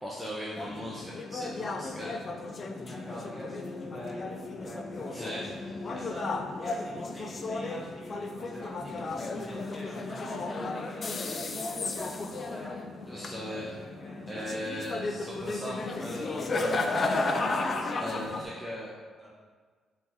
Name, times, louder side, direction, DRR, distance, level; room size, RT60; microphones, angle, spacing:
voice 1, 0.0-2.2 5.1-5.4 13.1-13.8 14.3-17.1 18.0-18.9, equal, ahead, -6 dB, 0.6 m, -38 dB
sound 1, 0.6-18.5, left 3 dB, 40° left, 0.3 m, -34 dB
voice 2, 2.6-4.2 4.5-5.5 5.9-6.3 6.6-12.8 13.5-14.5 19.2-19.3, left 1 dB, 20° left, -6 dB, 1.4 m, -45 dB
4.6 x 2.7 x 3.6 m, 1.5 s
cardioid pair, 90°, 0 cm